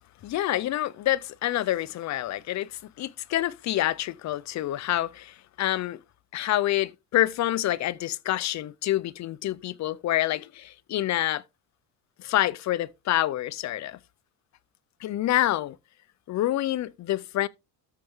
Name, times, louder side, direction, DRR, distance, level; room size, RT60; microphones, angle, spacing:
voice 1, 0.2-6.0 6.3-11.4 12.2-14.0 15.0-15.8 16.3-17.5, left 14 dB, 45° left, 0.5 m, -27 dB
13.5 x 4.5 x 3.6 m
cardioid pair, 140°, 40 cm